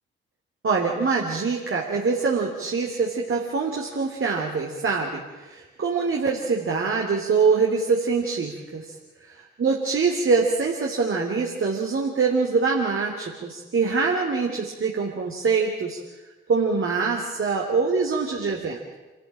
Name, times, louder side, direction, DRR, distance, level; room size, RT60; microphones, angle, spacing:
voice 1, 0.6-8.9 9.2-16.0 16.5-19.0, right 4 dB, 45° right, -1 dB, 3.5 m, -24 dB
27.5 x 14.0 x 8.9 m, 1.2 s
hypercardioid pair, 45°, 29 cm